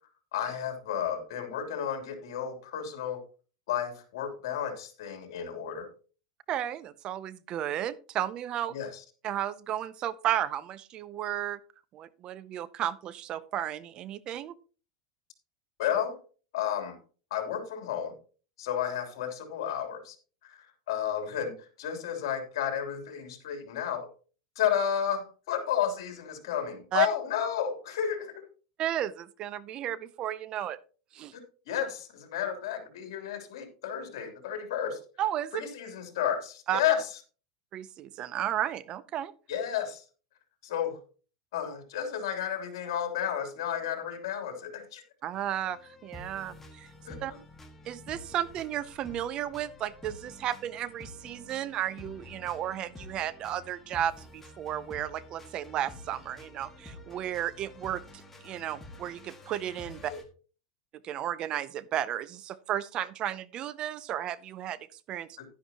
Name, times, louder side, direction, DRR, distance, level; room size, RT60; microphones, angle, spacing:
voice 1, 0.3-3.2 3.7-5.9 8.7-9.0 15.8-16.2 16.5-17.0 17.3-18.1 18.6-20.1 20.4-24.1 24.5-28.3 31.3-31.4 31.7-35.0 35.5-37.1 39.5-40.0 40.6-41.0 41.5-45.0 47.0-47.4 60.1-60.2 65.4-65.5, left 9 dB, 75° left, 5 dB, 3.1 m, -32 dB
voice 2, 6.5-8.8 9.2-11.6 11.9-14.5 26.9-27.1 28.8-30.8 31.1-31.3 35.2-35.6 36.7-36.8 37.7-39.3 45.2-46.9 47.2-47.3 47.9-58.0 58.4-60.1 61.0-64.8 65.1-65.4, right 11 dB, 35° right, 18 dB, 0.6 m, -33 dB
sound 1, 45.3-60.2, left 1 dB, 10° left, 1.7 m, -49 dB
11.5 x 10.0 x 2.9 m, 0.37 s
supercardioid pair, 140°, 3 cm